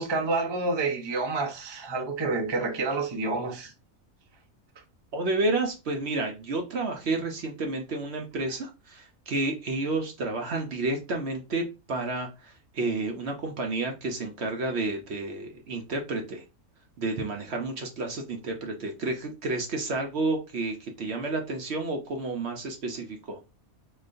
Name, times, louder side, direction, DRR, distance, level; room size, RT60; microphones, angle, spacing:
voice 1, 0.0-3.7, right 3 dB, 30° right, 0.5 m, -28 dB
voice 2, 5.1-16.4 17.0-23.4, right 2 dB, 55° right, 0.9 m, -30 dB
3.9 x 3.1 x 2.5 m
omnidirectional pair, 1.5 m